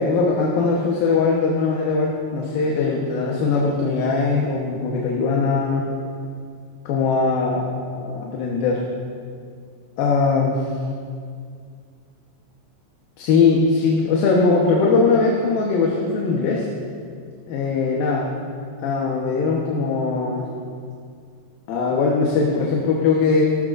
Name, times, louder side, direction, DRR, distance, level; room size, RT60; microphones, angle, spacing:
voice 1, 0.0-5.8 6.9-7.6 7.9-8.8 10.0-10.6 13.2-16.7 17.5-18.3 18.8-20.5 21.7-23.4, left 4 dB, 80° left, -2 dB, 2.9 m, -20 dB
18.5 x 13.5 x 2.6 m, 2.2 s
omnidirectional pair, 4.2 m